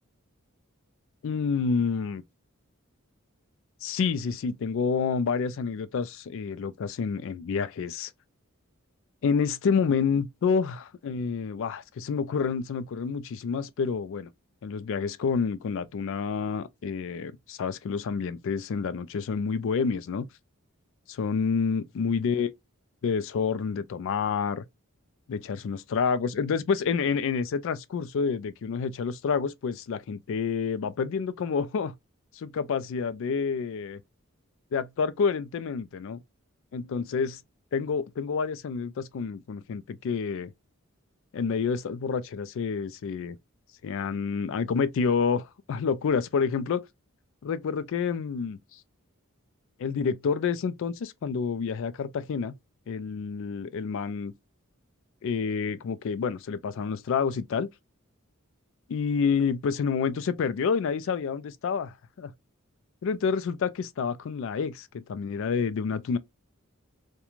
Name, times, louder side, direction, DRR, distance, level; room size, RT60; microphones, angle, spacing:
voice 1, 1.2-2.2 3.8-8.1 9.2-14.3 14.6-20.3 21.1-22.5 23.0-24.6 25.3-31.9 32.3-34.0 34.7-36.2 36.7-37.4 37.7-40.5 41.3-43.4 43.8-46.8 47.4-48.8 49.8-52.5 52.9-54.3 55.2-57.7 58.9-62.3 63.0-66.2, left 5 dB, 65° left, 0.3 m, -28 dB
2.4 x 2.2 x 2.9 m
head